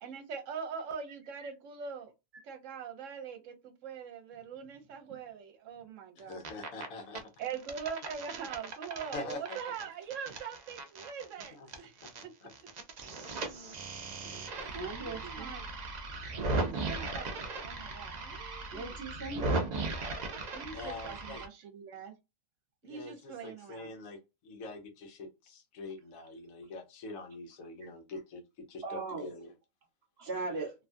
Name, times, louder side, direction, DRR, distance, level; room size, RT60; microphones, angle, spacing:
voice 1, 0.0-2.1 2.4-6.4 7.4-12.3 14.2-15.6 16.4-19.0 20.5-22.1 22.8-23.9, right 6 dB, 70° right, 1.0 m, -43 dB
voice 2, 6.2-7.2 9.1-9.4 11.5-11.7 12.0-12.1 12.4-12.5 14.1-14.4 20.7-21.4 22.8-24.2 24.4-29.5, left 3 dB, 75° left, 1.2 m, -44 dB
sound 1, 6.2-6.9 7.2-12.2 12.5-21.5, right 3 dB, 85° right, 0.3 m, -37 dB
voice 3, 14.7-15.6 18.7-19.5 28.8-29.3 30.2-30.7, right 3 dB, 50° right, 1.2 m, -38 dB
2.9 x 2.3 x 2.5 m
omnidirectional pair, 1.4 m